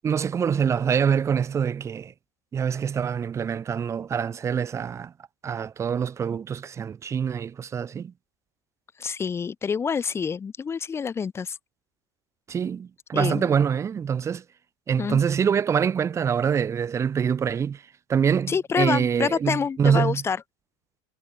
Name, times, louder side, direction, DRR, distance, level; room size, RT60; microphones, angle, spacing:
voice 1, 0.0-2.1 2.5-5.1 5.4-8.1 12.5-14.4 14.9-17.8 18.1-20.2, right 7 dB, 20° right, 1.8 m, -25 dB
voice 2, 9.0-11.6 13.1-13.5 15.0-15.2 18.5-20.4, left 6 dB, 15° left, 4.2 m, -27 dB
supercardioid pair, 160°, 15 cm